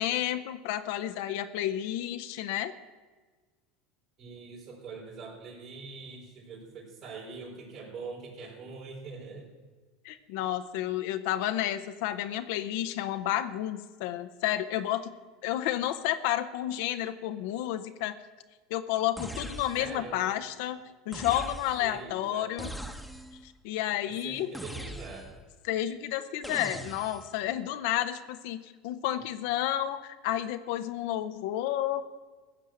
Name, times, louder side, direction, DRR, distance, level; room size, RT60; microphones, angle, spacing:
voice 1, 0.0-2.7 10.0-15.1 15.4-18.1 18.7-20.8 21.1-22.7 23.4-24.5 25.6-32.0, left 12 dB, 70° left, 8 dB, 0.8 m, -31 dB
voice 2, 4.2-9.5 19.7-20.2 21.8-22.5 24.1-25.3, right 4 dB, 55° right, -4 dB, 4.7 m, -43 dB
sound 1, 19.2-20.1 21.1-22.0 22.6-23.4 24.5-25.5 26.4-27.3, right 1 dB, ahead, 1.1 m, -41 dB
15.5 x 6.3 x 9.2 m, 1.4 s
hypercardioid pair, 100°, 0 cm